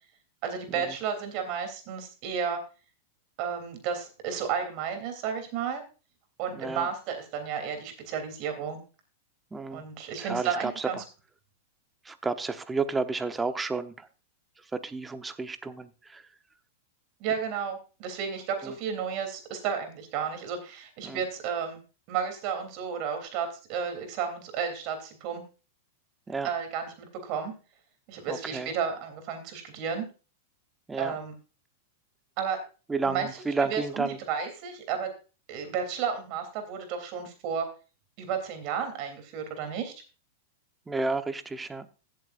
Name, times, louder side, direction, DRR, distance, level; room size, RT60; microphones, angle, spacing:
voice 1, 0.4-2.6 3.4-5.8 6.4-8.8 9.7-11.0 17.2-21.8 22.1-25.4 26.4-27.5 28.1-30.0 30.9-31.3 32.4-32.6 33.0-35.1 35.5-37.7 38.2-39.9, right 7 dB, 50° right, 5 dB, 3.2 m, -32 dB
voice 2, 6.6-6.9 9.5-9.8 10.2-10.9 12.1-14.1 14.8-16.2 21.0-21.2 26.3-26.5 28.3-28.7 30.9-31.1 32.9-34.2 40.9-41.9, right 4 dB, 15° right, 10 dB, 0.9 m, -31 dB
16.0 x 7.7 x 2.5 m, 0.34 s
hypercardioid pair, 115°, 0 cm